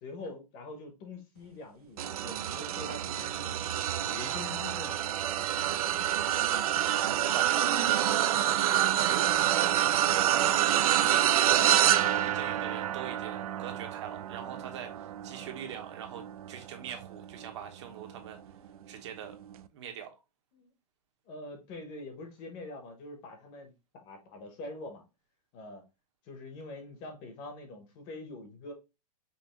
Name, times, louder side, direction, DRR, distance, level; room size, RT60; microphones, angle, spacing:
voice 1, 0.0-3.6 4.0-5.0 20.5-20.7 21.3-23.7 24.0-25.0 25.5-25.8 26.2-28.7, left 2 dB, 25° left, 0.9 m, -44 dB
sound 1, 2.0-17.5 18.0-18.3 19.5-19.6, right 11 dB, 65° right, 0.4 m, -27 dB
voice 2, 6.9-10.5 10.9-18.4 18.9-19.4 19.7-20.1, right 8 dB, 45° right, 1.1 m, -42 dB
5.5 x 3.0 x 3.0 m
supercardioid pair, 175°, 20 cm